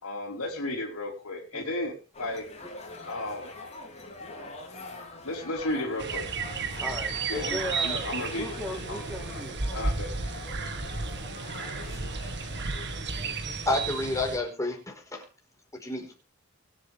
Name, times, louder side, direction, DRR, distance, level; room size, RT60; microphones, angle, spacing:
voice 1, 0.0-2.5 3.1-3.5 5.2-6.3 7.3-8.6 9.7-10.1, left 1 dB, 70° left, -5 dB, 3.7 m, -33 dB
sound 1, 2.1-13.4, left 2 dB, 30° left, 3.7 m, -44 dB
sound 2, 6.0-14.4, right 4 dB, 55° right, 1.9 m, -33 dB
voice 2, 6.8-9.6, left 1 dB, 5° right, 2 dB, 1.9 m, -37 dB
voice 3, 13.7-15.2 15.7-16.1, left 2 dB, 15° left, 1 dB, 4.8 m, -30 dB
23.5 x 8.1 x 3.6 m, 0.32 s
head